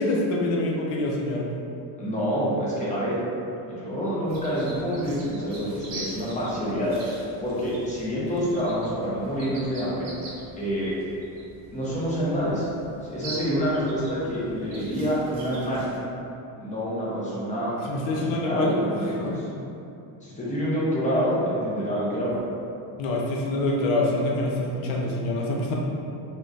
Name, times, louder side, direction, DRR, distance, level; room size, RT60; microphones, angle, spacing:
voice 1, 0.0-1.5 17.8-18.8 19.2-19.4 23.0-25.7, left 2 dB, 75° left, -2 dB, 0.7 m, -25 dB
voice 2, 2.0-3.3 3.7-10.1 10.6-10.9 11.7-12.7 13.0-15.9 16.6-17.7 18.1-19.4 20.2-22.4, equal, 15° left, -8 dB, 0.7 m, -27 dB
sound 1, 4.3-16.0, right 2 dB, 45° right, 0.9 m, -43 dB
3.5 x 2.7 x 2.5 m, 2.7 s
cardioid pair, 145°, 49 cm